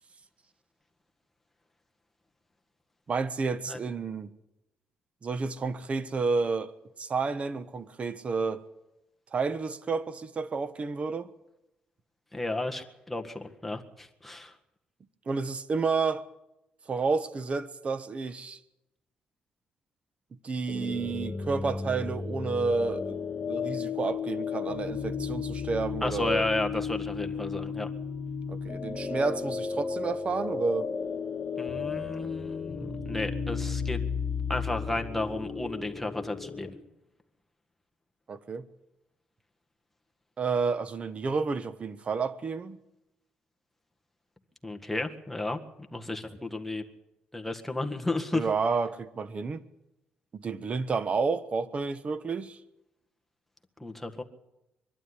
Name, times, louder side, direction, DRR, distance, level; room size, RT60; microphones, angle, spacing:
voice 1, 3.1-4.3 5.2-8.6 9.3-11.3 15.3-16.3 16.9-18.6 20.4-23.2 23.5-26.4 28.5-30.9 38.3-38.7 40.4-42.8 48.3-49.6 50.3-52.6, right 4 dB, 40° right, 1.2 m, -30 dB
voice 2, 12.3-14.6 26.0-27.9 31.6-34.0 34.5-36.8 44.6-45.6 45.9-46.8 47.3-48.4 53.8-54.2, left 2 dB, 5° left, 1.7 m, -33 dB
sound 1, 20.7-36.7, left 5 dB, 45° left, 2.7 m, -34 dB
22.5 x 12.0 x 9.9 m
cardioid pair, 105°, 3 cm